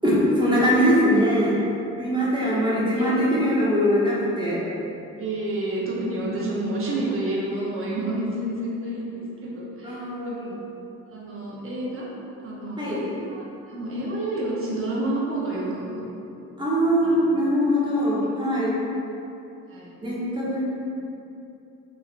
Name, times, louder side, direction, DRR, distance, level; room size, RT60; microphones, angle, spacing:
voice 1, 0.0-1.5 2.0-4.6 9.8-10.6 12.8-13.0 16.6-18.8 20.0-20.6, equal, 15° right, -7 dB, 1.0 m, -22 dB
voice 2, 2.3-2.6 2.9-3.4 5.2-10.6 11.1-12.1 12.4-16.0 17.0-17.3 19.7-20.0 20.3-20.6, right 1 dB, 45° right, -5 dB, 0.9 m, -30 dB
3.6 x 3.2 x 2.5 m, 2.7 s
cardioid pair, 90°, 30 cm